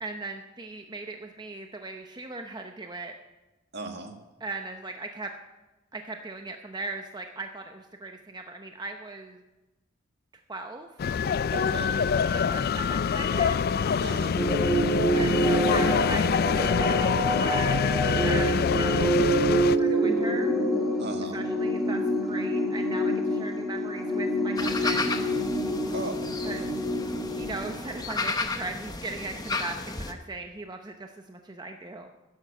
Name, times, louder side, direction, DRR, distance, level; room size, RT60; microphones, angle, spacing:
voice 1, 0.0-3.1 4.4-5.3 5.9-9.4 10.5-10.9 12.3-13.5 15.1-17.8 18.2-19.2 19.7-20.6 21.3-22.0 22.3-25.2 26.4-26.7 27.3-32.1, right 3 dB, 20° right, 4 dB, 0.7 m, -38 dB
voice 2, 3.7-4.1 11.5-12.0 14.0-14.3 19.4-19.8 21.0-21.4 25.9-26.5, right 3 dB, 60° right, 4 dB, 1.8 m, -37 dB
sound 1, 11.0-19.8, left 6 dB, 50° left, 0.3 m, -25 dB
sound 2, 14.4-28.1, right 1 dB, ahead, 1.8 m, -27 dB
sound 3, 24.6-30.1, left 3 dB, 20° left, 0.9 m, -33 dB
12.0 x 10.5 x 6.8 m, 1.1 s
head